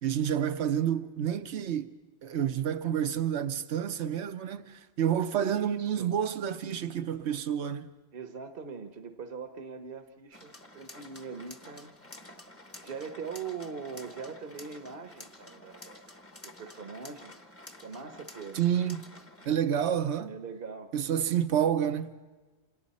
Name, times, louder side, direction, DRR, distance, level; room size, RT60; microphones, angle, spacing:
voice 1, 0.0-1.9 2.2-7.9 18.5-19.0 19.5-20.3 20.9-22.1, right 9 dB, 80° right, 1.1 m, -29 dB
voice 2, 5.4-6.1 8.1-11.9 12.8-16.1 16.4-17.3 17.8-18.7 20.3-20.9, right 5 dB, 60° right, 1.1 m, -41 dB
sound 1, 10.3-19.5, left 1 dB, 15° left, 1.0 m, -50 dB
28.5 x 26.5 x 4.2 m
omnidirectional pair, 1.1 m